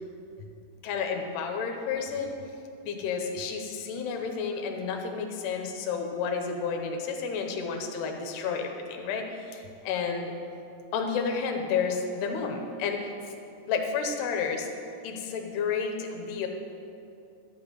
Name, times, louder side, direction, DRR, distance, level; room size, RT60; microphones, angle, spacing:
voice 1, 0.8-2.3 2.8-10.3 10.9-13.1 13.7-14.7 15.0-16.5, left 5 dB, 80° left, 3 dB, 2.9 m, -31 dB
12.0 x 5.5 x 7.9 m, 2.6 s
omnidirectional pair, 5.0 m